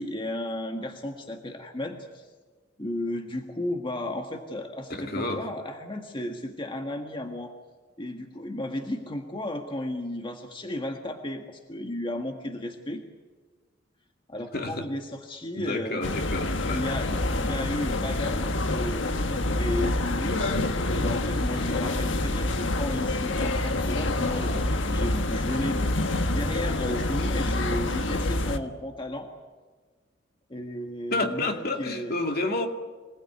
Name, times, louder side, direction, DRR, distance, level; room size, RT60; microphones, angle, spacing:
voice 1, 0.0-2.3 2.8-7.5 8.0-13.0 14.3-16.1 16.5-17.1 17.4-20.4 20.9-29.3 30.5-32.1, left 1 dB, 25° left, 1.7 m, -34 dB
voice 2, 4.9-5.5 14.5-14.9 15.6-16.8 31.1-32.7, left 2 dB, 55° left, 2.4 m, -30 dB
sound 1, 16.0-28.6, left 2 dB, 85° left, 1.5 m, -27 dB
26.0 x 19.0 x 9.6 m
head